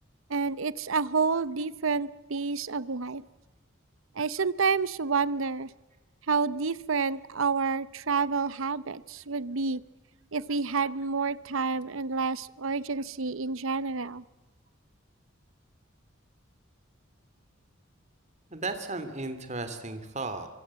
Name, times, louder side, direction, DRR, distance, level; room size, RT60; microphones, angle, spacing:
voice 1, 0.3-3.2 4.2-5.7 6.3-9.8 10.3-14.2, right 4 dB, 80° right, 17 dB, 0.9 m, -29 dB
voice 2, 18.5-20.5, right 3 dB, 35° right, 9 dB, 2.9 m, -35 dB
25.0 x 24.5 x 7.6 m, 1.1 s
head